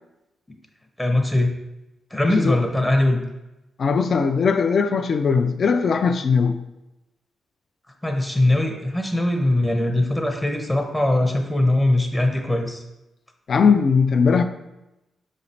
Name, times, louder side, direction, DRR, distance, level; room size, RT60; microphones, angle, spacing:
voice 1, 1.0-1.5 2.1-3.2 8.0-12.8, left 1 dB, 10° left, 0.6 m, -21 dB
voice 2, 3.8-6.6 13.5-14.4, left 5 dB, 60° left, 0.3 m, -19 dB
4.9 x 3.1 x 2.7 m
cardioid pair, 70°, 0 cm